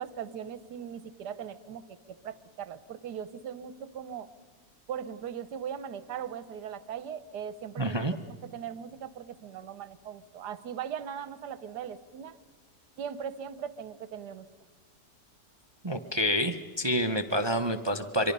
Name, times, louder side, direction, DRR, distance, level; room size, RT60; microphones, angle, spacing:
voice 1, 0.0-4.3 4.9-8.0 8.2-12.4 13.0-14.5, right 8 dB, 70° right, 14 dB, 1.4 m, -39 dB
voice 2, 7.8-8.2 15.8-18.3, equal, 35° right, 8 dB, 0.4 m, -28 dB
25.0 x 24.5 x 5.4 m, 1.5 s
omnidirectional pair, 1.8 m